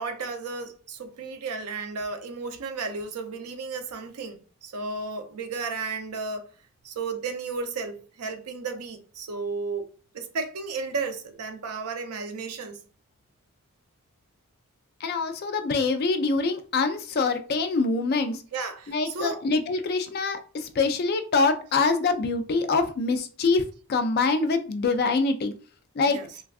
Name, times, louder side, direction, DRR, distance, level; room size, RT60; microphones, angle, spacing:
voice 1, 0.0-6.5 6.8-9.9 10.1-12.8 18.5-19.4 26.1-26.3, right 4 dB, 85° right, 0.5 m, -33 dB
voice 2, 15.0-18.4 18.9-25.5 26.0-26.2, left 4 dB, 45° left, 0.3 m, -25 dB
3.3 x 2.3 x 2.3 m
head